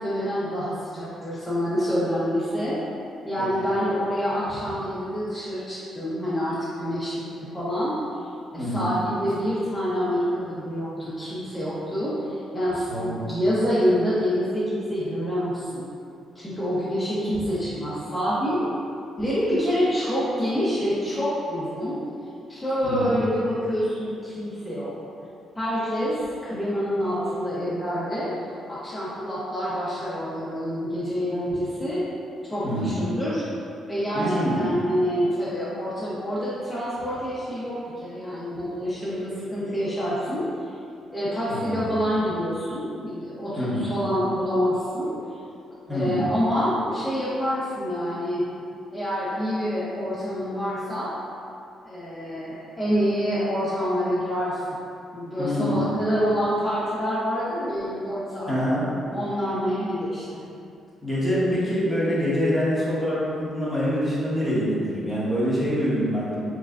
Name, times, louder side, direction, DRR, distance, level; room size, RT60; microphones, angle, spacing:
voice 1, 0.0-2.8 3.2-8.0 8.5-15.9 16.3-18.6 19.2-22.0 22.5-24.9 25.6-32.0 32.5-33.5 33.9-40.4 41.1-45.4 45.9-48.4 48.9-51.2 51.8-54.6 55.1-58.5 59.1-60.4, equal, 15° left, -10 dB, 0.8 m, -27 dB
voice 2, 8.6-8.9 12.9-13.2 22.8-23.2 32.6-33.0 34.1-34.6 41.5-42.0 43.6-44.0 45.9-46.3 55.4-55.8 58.5-58.8 61.0-66.3, equal, 10° right, -9 dB, 1.2 m, -25 dB
3.7 x 3.2 x 2.5 m, 2.5 s
cardioid pair, 90°, 0 cm